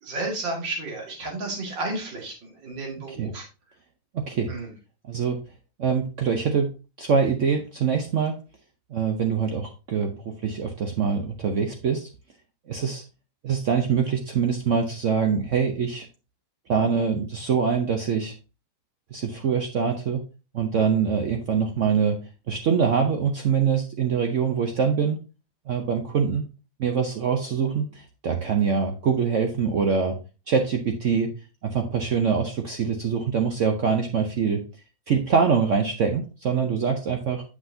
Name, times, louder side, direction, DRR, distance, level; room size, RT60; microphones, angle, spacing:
voice 1, 0.0-3.5 4.5-4.7, right 2 dB, 90° right, 0 dB, 2.8 m, -32 dB
voice 2, 4.1-4.5 5.1-5.4 5.8-6.7 7.0-8.3 8.9-12.1 12.7-13.0 13.4-16.1 16.7-18.3 19.1-20.2 20.5-22.2 22.5-25.2 25.7-26.5 26.8-30.1 30.5-31.3 31.6-34.6 35.1-37.4, right 6 dB, 60° right, 4 dB, 0.8 m, -24 dB
7.8 x 6.0 x 2.7 m, 0.31 s
omnidirectional pair, 1.9 m